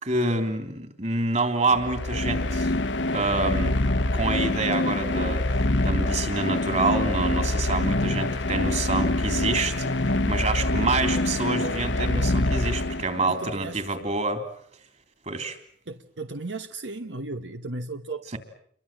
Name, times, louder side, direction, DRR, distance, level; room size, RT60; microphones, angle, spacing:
voice 1, 0.0-2.7 3.1-3.8 4.1-5.4 5.8-14.4 15.3-15.6, right 3 dB, 40° right, 3.5 m, -27 dB
sound 1, 1.7-13.4, left 2 dB, 80° left, 1.2 m, -25 dB
voice 2, 13.3-13.8 15.9-18.4, right 3 dB, 80° right, 1.2 m, -35 dB
29.0 x 23.5 x 7.6 m
head